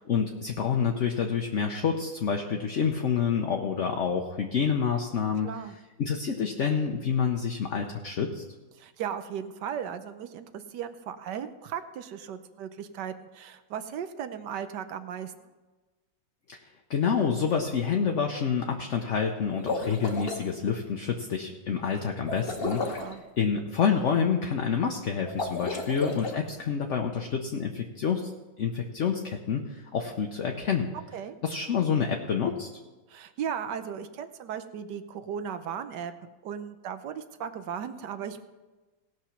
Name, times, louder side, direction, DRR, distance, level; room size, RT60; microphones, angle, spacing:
voice 1, 0.0-5.5 6.0-8.4 16.5-16.6 16.9-23.0 23.4-28.3 28.6-30.9 31.4-32.7, left 6 dB, 55° left, 2 dB, 0.9 m, -28 dB
voice 2, 5.4-5.7 8.7-15.3 22.8-23.2 31.1-31.4 33.1-36.1 36.4-38.5, right 8 dB, 65° right, 10 dB, 1.3 m, -36 dB
sound 1, 19.5-20.4 22.3-23.1 25.3-26.4, left 3 dB, 35° left, 1.1 m, -32 dB
17.5 x 6.1 x 5.8 m, 1.2 s
omnidirectional pair, 2.1 m